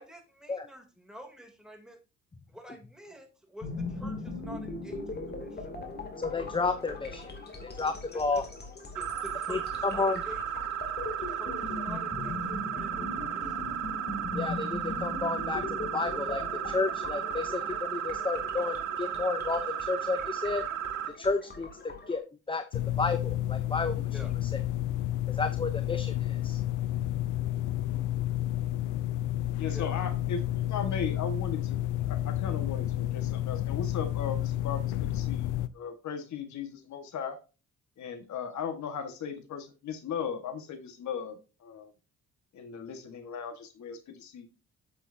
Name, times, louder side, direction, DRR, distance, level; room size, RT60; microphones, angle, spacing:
voice 1, 0.0-2.0 2.5-5.7 8.1-8.2 8.9-10.7 11.2-13.7 24.1-24.3 29.7-29.9, equal, ahead, 3 dB, 2.9 m, -48 dB
sound 1, 3.6-22.2, left 3 dB, 35° left, 2.7 m, -40 dB
voice 2, 6.2-7.3 7.6-8.4 9.5-10.2 14.3-20.7 21.2-24.5 25.3-26.6, left 3 dB, 15° left, 10 dB, 0.7 m, -32 dB
sound 2, 8.9-21.1, right 9 dB, 80° right, 1.6 m, -34 dB
sound 3, 22.7-35.7, left 13 dB, 90° left, 0.5 m, -31 dB
voice 3, 29.6-31.8 32.1-37.4 38.0-41.9 42.5-44.5, left 6 dB, 70° left, 8 dB, 1.6 m, -37 dB
8.6 x 7.4 x 2.7 m, 0.31 s
cardioid pair, 90°, 30 cm